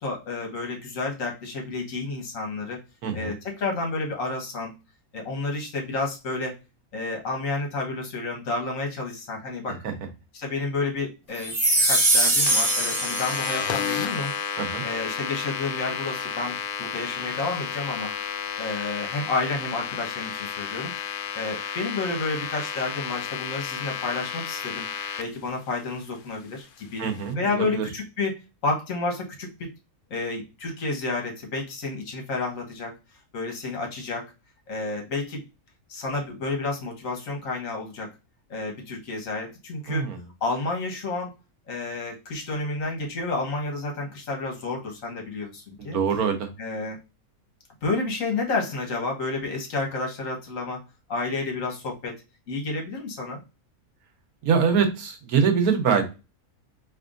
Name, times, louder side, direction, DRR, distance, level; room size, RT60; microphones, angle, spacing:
voice 1, 0.0-2.8 3.1-4.7 5.1-6.6 6.9-9.8 10.3-11.5 11.9-14.3 14.8-18.1 18.6-24.9 25.2-27.0 27.4-28.3 28.6-29.7 30.1-32.9 33.3-34.2 34.7-35.4 35.9-38.1 38.5-40.1 40.4-41.3 41.7-46.0 46.6-47.0 47.8-50.8 51.1-52.1 52.5-53.4, left 3 dB, 65° left, 1 dB, 1.6 m, -30 dB
voice 2, 3.0-3.3 9.8-9.9 14.6-14.8 27.0-27.9 39.9-40.2 45.8-46.5 54.4-56.1, right 6 dB, 85° right, 6 dB, 1.4 m, -24 dB
sound 1, 11.4-14.0, right 1 dB, 20° right, 1.1 m, -22 dB
sound 2, 12.5-25.2, left 8 dB, 90° left, 1.1 m, -32 dB
4.4 x 3.2 x 2.5 m, 0.29 s
omnidirectional pair, 1.5 m